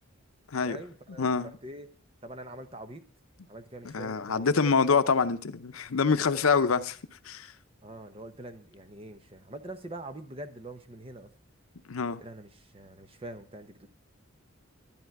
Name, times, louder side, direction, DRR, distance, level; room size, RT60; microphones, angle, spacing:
voice 1, 0.6-1.9 2.2-3.0 3.5-4.8 7.8-11.3 12.2-13.9, right 1 dB, 25° right, 0.8 m, -44 dB
voice 2, 1.2-1.5 3.9-7.0 7.2-7.5 11.9-12.2, left 5 dB, 80° left, 0.7 m, -25 dB
11.5 x 11.0 x 4.7 m
head